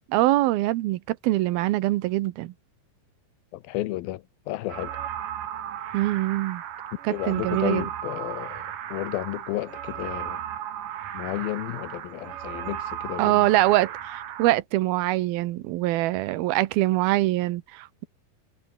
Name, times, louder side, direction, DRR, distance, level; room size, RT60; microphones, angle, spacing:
voice 1, 0.1-2.5 5.9-6.6 7.0-7.9 13.2-18.1, right 17 dB, 85° right, 2.8 m, -24 dB
voice 2, 3.5-5.0 7.1-10.4 11.1-13.5, left 16 dB, 85° left, 2.7 m, -32 dB
sound 1, 4.7-14.5, right 10 dB, 65° right, 3.3 m, -35 dB
omnidirectional pair, 4.2 m